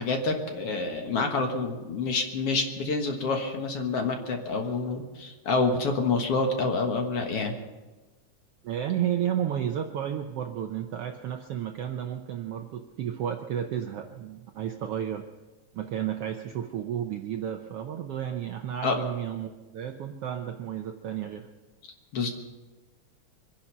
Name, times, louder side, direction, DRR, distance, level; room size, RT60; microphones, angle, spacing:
voice 1, 0.0-7.5 18.8-18.9 22.1-22.3, left 3 dB, 55° left, 3 dB, 2.2 m, -27 dB
voice 2, 8.6-15.2 15.7-21.5, right 10 dB, 75° right, 5 dB, 1.4 m, -32 dB
24.5 x 10.0 x 5.5 m, 1.2 s
omnidirectional pair, 3.5 m